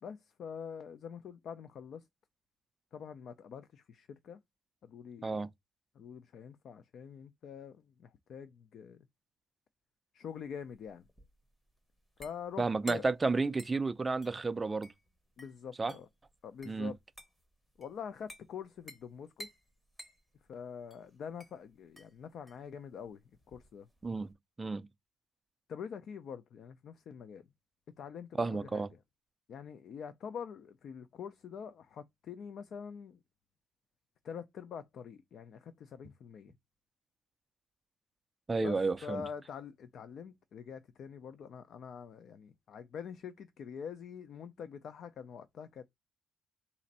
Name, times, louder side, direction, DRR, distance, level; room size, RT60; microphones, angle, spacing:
voice 1, 0.0-2.0 2.9-4.4 4.8-5.5 6.0-9.1 10.1-11.0 12.2-13.1 15.4-16.1 16.4-17.0 17.8-19.5 20.5-23.2 23.5-23.9 25.7-27.5 28.0-28.9 29.5-33.2 34.2-36.5 38.6-45.8, left 7 dB, 55° left, 0.4 m, -45 dB
sound 1, 10.4-24.3, equal, 15° left, 0.8 m, -55 dB
voice 2, 12.6-14.9 15.8-15.9 16.7-16.9 24.0-24.3 24.6-24.9 28.4-28.9 38.5-39.3, right 3 dB, 20° right, 0.3 m, -32 dB
4.0 x 2.5 x 4.1 m
cardioid pair, 135°, 0 cm